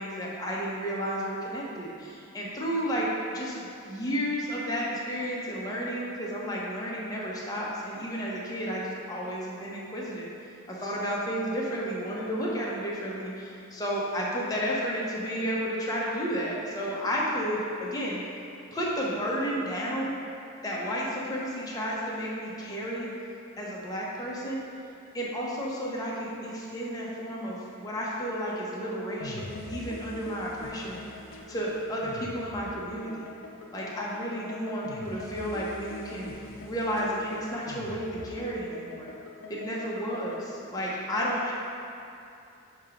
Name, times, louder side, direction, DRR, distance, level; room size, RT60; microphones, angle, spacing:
voice 1, 0.0-3.6 3.9-10.3 10.7-18.2 18.7-20.1 20.6-23.1 23.6-24.6 25.1-31.0 31.5-33.2 33.7-36.3 36.6-39.1 39.5-41.5, equal, 15° left, -5 dB, 0.9 m, -32 dB
sound 1, 29.2-40.5, left 2 dB, 65° left, 0.5 m, -43 dB
7.1 x 2.9 x 5.0 m, 2.6 s
head